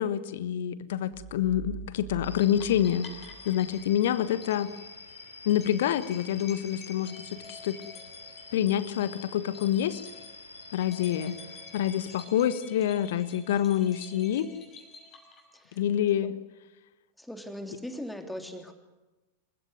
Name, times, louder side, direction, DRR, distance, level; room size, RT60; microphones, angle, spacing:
voice 1, 0.0-3.2 3.4-4.7 5.4-7.8 8.5-10.0 10.7-11.4 11.7-14.5 15.8-16.4, left 10 dB, 55° left, 15 dB, 1.3 m, -27 dB
sound 1, 1.1-3.9, right 12 dB, 55° right, 2.2 m, -44 dB
sound 2, 2.2-12.3, left 3 dB, 75° left, 3.3 m, -47 dB
sound 3, 2.4-15.8, left 4 dB, 25° left, 6.5 m, -51 dB
voice 2, 17.2-18.7, equal, 5° left, 6 dB, 2.9 m, -39 dB
27.5 x 16.0 x 9.8 m, 1.1 s
figure-of-eight pair, 90°, 0 cm